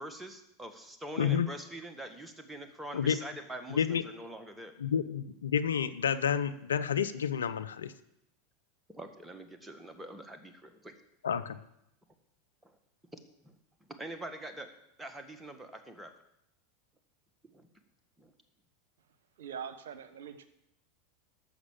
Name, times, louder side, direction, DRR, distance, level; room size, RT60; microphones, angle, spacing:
voice 1, 0.0-4.7 8.9-10.9 12.6-12.7 13.4-13.5 14.0-14.7 15.0-16.1 17.5-17.7 18.2-18.3, right 1 dB, 10° right, 7 dB, 1.8 m, -44 dB
voice 2, 1.2-1.5 2.9-3.2 3.7-4.0 4.8-7.9 11.2-11.6, left 8 dB, 80° left, 11 dB, 0.7 m, -30 dB
voice 3, 19.4-20.5, right 7 dB, 75° right, 12 dB, 1.0 m, -42 dB
14.0 x 6.2 x 7.5 m, 0.80 s
hypercardioid pair, 90°, 0 cm